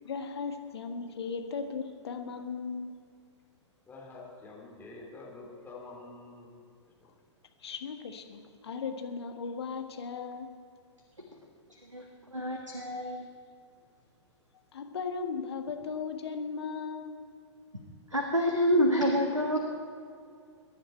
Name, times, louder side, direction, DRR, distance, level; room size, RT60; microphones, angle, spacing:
voice 1, 0.0-2.9 7.6-10.5 14.7-17.2, left 5 dB, 60° left, 5 dB, 1.7 m, -37 dB
voice 2, 3.9-6.5 7.0-7.1, left 3 dB, 10° left, -3 dB, 3.4 m, -47 dB
voice 3, 12.3-13.3 18.1-19.6, equal, 90° right, 2 dB, 1.6 m, -27 dB
22.5 x 10.5 x 4.5 m, 2.2 s
figure-of-eight pair, 110°, 16 cm